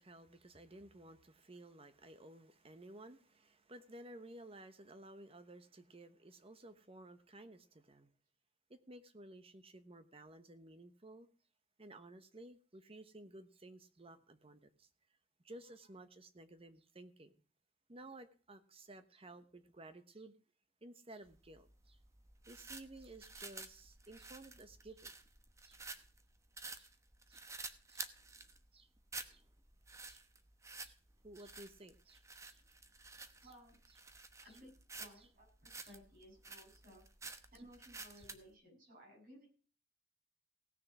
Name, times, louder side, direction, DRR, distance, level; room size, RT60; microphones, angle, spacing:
voice 1, 0.0-8.1 8.7-11.3 11.8-14.9 15.4-17.3 17.9-20.4 20.8-22.0 22.5-25.1 25.6-25.8 26.7-26.9 27.3-27.4 27.9-28.0 28.7-28.9 29.3-29.4 30.0-30.2 30.8-31.0 31.2-32.6 35.8-35.9 38.1-38.3, right 1 dB, 30° right, 1.1 m, -55 dB
sound 1, 21.3-38.4, right 3 dB, 15° right, 1.0 m, -51 dB
voice 2, 33.4-33.8 34.4-37.0 37.5-39.5, equal, 50° right, 7.4 m, -59 dB
17.0 x 6.6 x 6.1 m
head